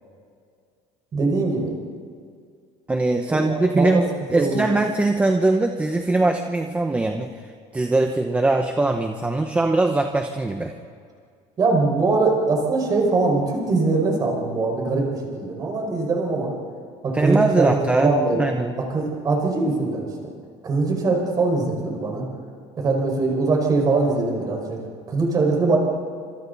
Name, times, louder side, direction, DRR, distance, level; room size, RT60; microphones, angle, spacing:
voice 1, 1.1-1.8 3.3-4.0 4.3-4.6 11.6-15.1 15.3-16.5 17.0-18.4 18.8-20.1 20.6-22.2 22.8-24.8 25.1-25.8, right 3 dB, 30° right, 1 dB, 5.3 m, -22 dB
voice 2, 2.9-4.0 4.3-7.3 7.7-10.7 17.1-18.1 18.4-18.8, right 2 dB, 10° right, 5 dB, 0.9 m, -21 dB
27.5 x 26.0 x 4.1 m, 2.2 s
cardioid pair, 160°, 14 cm